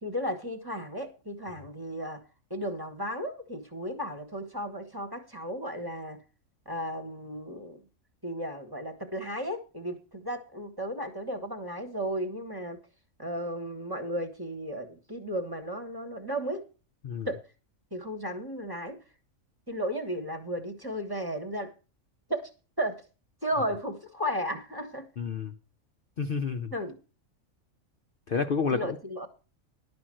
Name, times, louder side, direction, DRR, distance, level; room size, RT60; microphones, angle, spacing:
voice 1, 0.0-2.2 2.5-6.2 6.6-7.8 8.2-12.8 13.2-16.7 17.2-17.4 17.9-19.0 19.7-21.7 22.3-22.5 22.8-23.0 23.4-25.1 26.7-27.0 28.7-29.3, equal, 20° right, 4 dB, 1.2 m, -34 dB
voice 2, 25.2-25.5 26.2-26.7 28.3-29.0, left 5 dB, 50° left, 5 dB, 0.8 m, -29 dB
11.5 x 5.2 x 7.6 m, 0.34 s
omnidirectional pair, 1.4 m